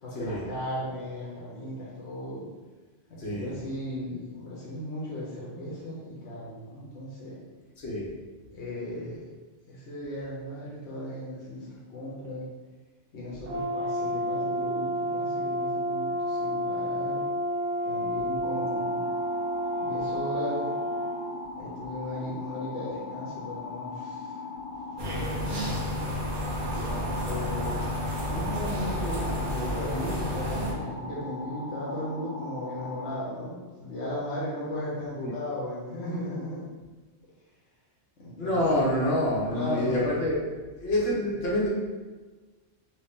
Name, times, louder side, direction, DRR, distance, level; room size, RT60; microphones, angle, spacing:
voice 1, 0.0-2.5 3.1-7.4 8.5-9.3 9.7-12.4 13.1-17.3 17.8-19.1 19.8-20.7 21.5-24.3 25.0-26.2 26.9-27.8 28.3-36.7 38.2-39.0 39.5-40.0, left 1 dB, 85° left, -6 dB, 1.1 m, -36 dB
voice 2, 3.2-3.5 7.8-8.1 35.2-35.3 38.4-40.4 40.8-41.7, left 1 dB, 65° left, -6 dB, 1.2 m, -27 dB
Brass instrument, 13.4-21.2, equal, 85° right, 1.2 m, -30 dB
sound 1, 18.4-33.2, left 2 dB, 35° left, 0.9 m, -40 dB
sound 2, 25.0-30.7, equal, 50° right, 0.9 m, -31 dB
3.1 x 2.9 x 3.5 m, 1.3 s
omnidirectional pair, 1.1 m